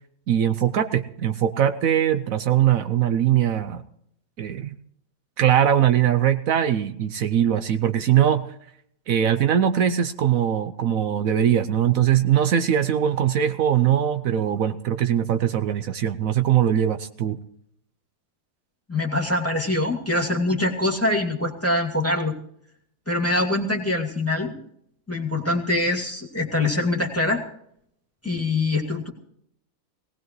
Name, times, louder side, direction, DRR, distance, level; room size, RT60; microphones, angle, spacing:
voice 1, 0.3-3.8 4.4-4.7 5.4-8.4 9.1-17.4, right 10 dB, 70° right, 10 dB, 1.1 m, -21 dB
voice 2, 18.9-22.3 23.1-24.5 25.1-27.4 28.2-29.1, left 2 dB, 10° left, 1 dB, 2.3 m, -24 dB
19.0 x 18.5 x 3.1 m, 0.71 s
omnidirectional pair, 1.5 m